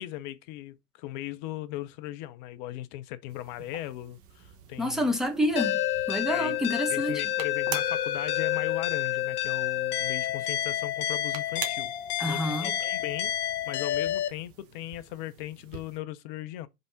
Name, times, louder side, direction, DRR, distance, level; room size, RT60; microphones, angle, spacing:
voice 1, 0.0-5.1 6.3-6.6 6.9-11.9 12.2-16.7, left 14 dB, 30° left, 0.5 m, -38 dB
sound 1, 3.3-16.0, right 8 dB, 30° right, 1.1 m, -46 dB
voice 2, 4.8-5.8 6.1-7.2 12.2-12.7, left 1 dB, ahead, 0.9 m, -28 dB
sound 2, 5.6-14.3, left 12 dB, 65° left, 1.0 m, -29 dB
5.3 x 3.5 x 5.6 m
hypercardioid pair, 110°, 49 cm